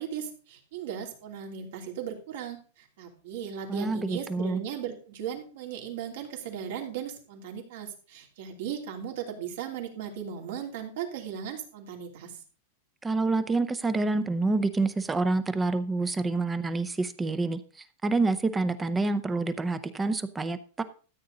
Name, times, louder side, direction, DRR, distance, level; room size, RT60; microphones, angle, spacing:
voice 1, 0.0-12.4, right 8 dB, 60° right, 2 dB, 3.0 m, -37 dB
voice 2, 3.7-4.6 13.0-17.6 18.0-20.8, right 3 dB, 10° right, 12 dB, 0.6 m, -27 dB
13.5 x 8.4 x 3.9 m, 0.38 s
supercardioid pair, 170°, 0 cm